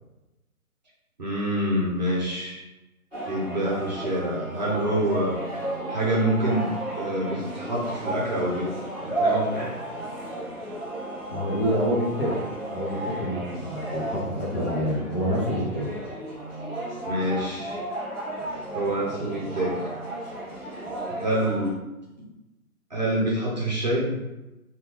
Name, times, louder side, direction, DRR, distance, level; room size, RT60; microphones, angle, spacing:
voice 1, 1.2-2.6 3.3-5.4 5.9-8.8 9.0-9.8 17.1-17.8 18.7-19.8 21.1-21.8 22.9-24.2, right 1 dB, 30° right, -5 dB, 0.6 m, -26 dB
sound 1, 3.1-21.7, right 1 dB, 5° left, 0.8 m, -33 dB
voice 2, 11.3-15.9, equal, 40° left, -3 dB, 0.6 m, -27 dB
2.6 x 2.3 x 3.3 m, 1.0 s
figure-of-eight pair, 145°, 45 cm